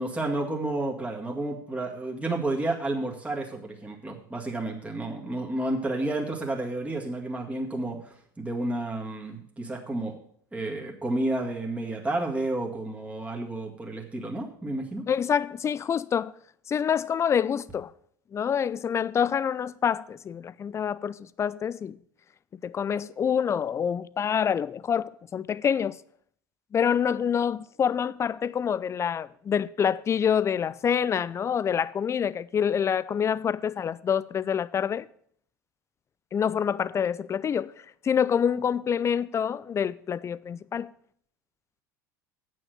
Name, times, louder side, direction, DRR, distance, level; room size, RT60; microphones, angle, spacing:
voice 1, 0.0-10.1 10.5-15.1, right 2 dB, 10° right, 2.0 m, -31 dB
voice 2, 15.1-16.3 16.7-17.9 18.3-22.0 22.6-26.0 26.7-35.1 36.3-37.7 38.0-40.9, left 8 dB, 25° left, 0.4 m, -26 dB
8.7 x 6.2 x 7.8 m
hypercardioid pair, 80°, 11 cm